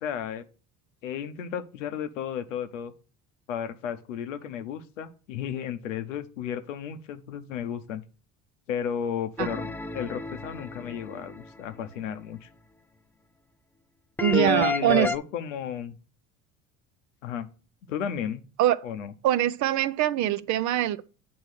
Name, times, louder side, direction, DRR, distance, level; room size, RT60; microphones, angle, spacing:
voice 1, 0.0-0.4 1.0-2.9 3.5-8.0 8.7-12.5 14.3-16.0 17.2-17.5 17.9-18.4 18.8-19.1, left 8 dB, 90° left, 0.8 m, -33 dB
sound 1, 9.4-11.5 14.2-15.2, left 2 dB, 5° left, 0.3 m, -31 dB
voice 2, 14.2-15.1 18.6-18.8 19.2-21.0, right 12 dB, 50° right, 0.6 m, -23 dB
8.6 x 3.1 x 6.3 m
hypercardioid pair, 70°, 37 cm